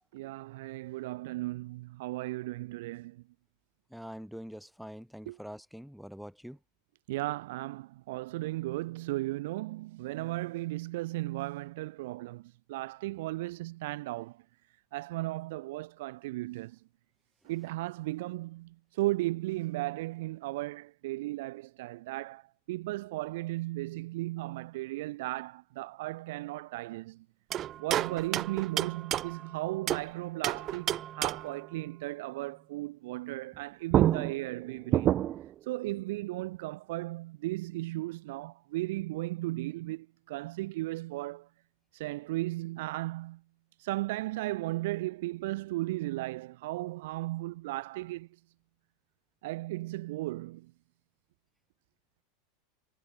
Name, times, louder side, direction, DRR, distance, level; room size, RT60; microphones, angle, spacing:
voice 1, 0.1-3.2 5.3-5.4 7.1-14.4 14.9-16.8 17.4-22.4 22.7-27.2 27.8-35.2 35.7-41.5 41.9-43.4 43.8-48.3 49.4-50.7, right 19 dB, 70° right, 1.9 m, -36 dB
voice 2, 3.9-6.6, equal, ahead, 3.6 m, -44 dB
sound 1, 27.5-30.1 30.4-31.6 33.5-33.6 33.9-35.5, right 12 dB, 40° right, 0.7 m, -30 dB
hypercardioid pair, 100°, 0 cm